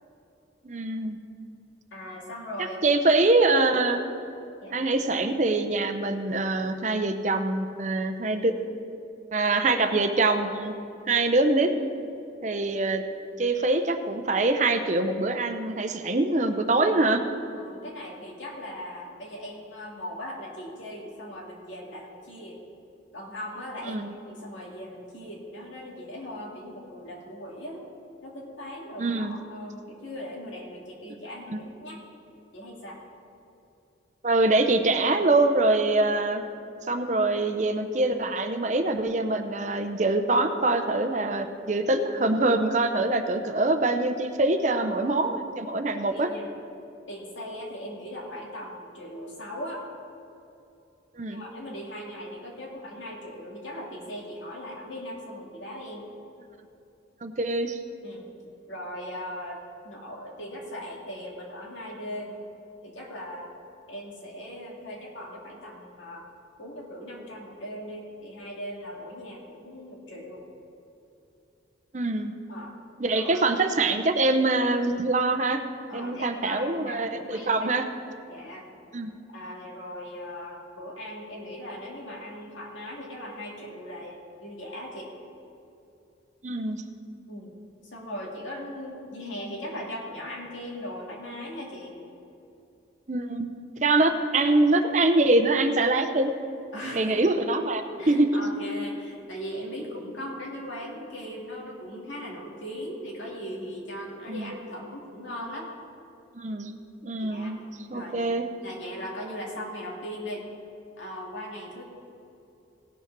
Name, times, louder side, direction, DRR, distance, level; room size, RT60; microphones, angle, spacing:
voice 1, 0.6-1.2 2.8-4.0 4.7-8.5 9.3-10.7 11.1-11.7 12.4-13.0 13.4-17.2 23.9-24.1 29.0-29.4 31.5-31.6 34.2-36.4 36.9-46.3 51.2-51.4 57.2-57.8 71.9-72.3 73.0-75.6 75.9-77.8 78.9-79.1 86.4-86.8 93.1-93.5 93.8-96.3 96.9-98.4 104.3-104.5 106.3-106.7 107.0-107.6 107.9-108.5, right 2 dB, 40° right, 7 dB, 0.6 m, -24 dB
voice 2, 1.9-2.8 4.6-4.9 17.6-22.6 23.1-27.9 28.2-32.0 32.5-33.0 43.3-43.4 44.7-45.2 46.0-46.5 47.1-49.9 51.3-56.1 58.0-58.3 58.7-62.3 62.8-63.6 63.9-66.2 66.6-70.5 72.5-72.7 73.1-73.5 75.9-77.7 78.3-78.7 79.3-85.1 87.3-87.5 87.9-92.0 96.7-97.2 98.0-105.7 107.2-107.5 107.9-108.3 108.6-110.5 111.0-111.8, equal, 85° left, -2 dB, 2.3 m, -39 dB
17.0 x 5.7 x 6.0 m, 2.8 s
head